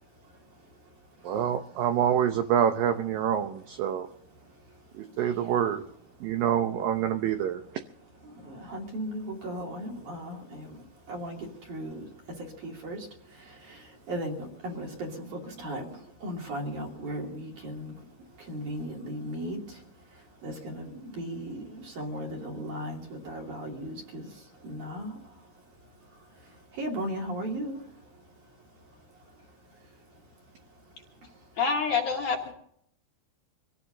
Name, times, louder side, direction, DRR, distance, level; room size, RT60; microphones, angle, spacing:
voice 1, 1.2-4.1 4.9-5.8 6.2-7.6, right 9 dB, 75° right, 6 dB, 2.1 m, -26 dB
voice 2, 8.2-18.1 18.4-19.8 20.1-25.3 26.4-27.8, equal, 50° right, 0 dB, 3.9 m, -37 dB
voice 3, 31.6-32.5, left 5 dB, 60° left, 0 dB, 2.3 m, -27 dB
25.0 x 16.5 x 2.7 m, 0.69 s
omnidirectional pair, 5.0 m